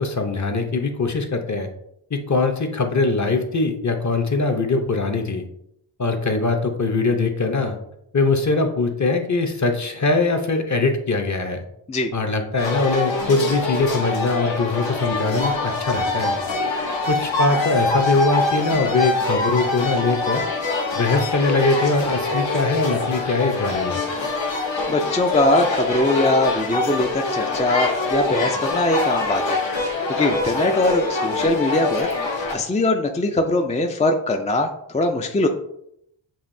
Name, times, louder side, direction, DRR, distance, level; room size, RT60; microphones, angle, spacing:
voice 1, 0.0-1.7 2.1-5.5 6.0-7.8 8.1-11.6 12.1-16.4 17.1-24.0, left 3 dB, 40° left, 5 dB, 0.7 m, -22 dB
sound 1, 12.6-32.6, left 3 dB, 70° left, 1.0 m, -24 dB
voice 2, 24.9-29.6 30.1-32.1 32.5-35.5, left 1 dB, 15° left, 4 dB, 0.3 m, -21 dB
7.1 x 2.7 x 2.6 m, 0.76 s
wide cardioid pair, 80°, 46 cm